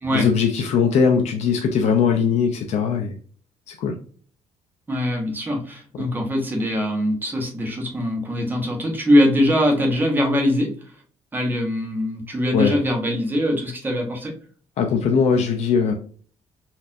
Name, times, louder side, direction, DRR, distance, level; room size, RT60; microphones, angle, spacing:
voice 1, 0.1-3.1 3.7-3.9 12.5-12.8 14.8-15.9, left 6 dB, 60° left, 4 dB, 0.5 m, -20 dB
voice 2, 4.9-10.7 11.3-14.3, equal, 15° right, 1 dB, 1.0 m, -22 dB
4.1 x 2.6 x 2.6 m, 0.44 s
cardioid pair, 165°, 13 cm